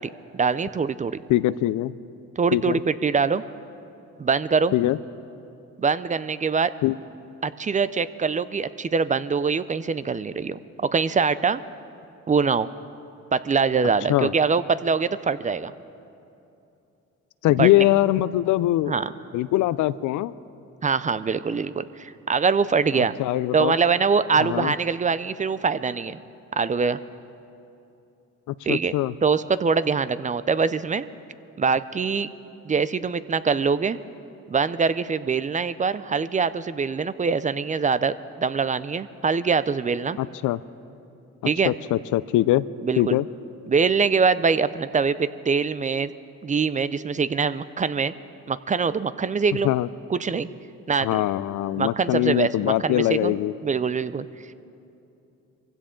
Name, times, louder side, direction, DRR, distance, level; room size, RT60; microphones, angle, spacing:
voice 1, 0.3-1.2 2.4-3.4 4.2-4.7 5.8-6.7 7.4-11.6 12.3-12.7 13.3-15.7 17.6-17.8 18.9-19.1 20.8-23.1 23.5-26.2 26.6-27.0 28.6-28.9 29.2-31.1 31.6-32.3 32.7-34.0 34.5-40.2 41.4-41.7 42.8-43.2 43.7-46.1 46.4-48.1 48.5-49.7 50.1-50.5 50.9-51.2 51.8-53.3 53.6-54.3, right 5 dB, 25° right, 15 dB, 0.4 m, -23 dB
voice 2, 1.3-1.9 2.5-2.8 4.7-5.0 6.8-7.0 14.1-14.3 17.4-19.0 19.3-20.3 22.9-23.8 24.4-24.7 28.5-29.1 40.2-40.6 41.6-42.7 43.0-43.3 49.6-49.9 51.0-53.5, left 15 dB, 80° left, 17 dB, 0.5 m, -22 dB
23.0 x 16.0 x 3.8 m, 2.8 s
cardioid pair, 90°, 30 cm